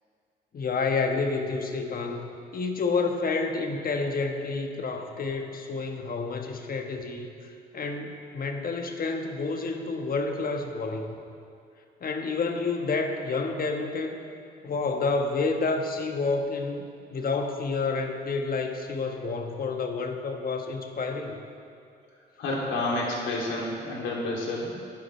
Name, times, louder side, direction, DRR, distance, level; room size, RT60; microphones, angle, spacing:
voice 1, 0.5-11.1 12.0-14.2 14.6-21.4, left 4 dB, 45° left, 4 dB, 1.4 m, -29 dB
voice 2, 22.4-24.8, left 2 dB, 75° left, -4 dB, 2.8 m, -29 dB
14.5 x 10.5 x 3.3 m, 2.4 s
supercardioid pair, 65°, 20 cm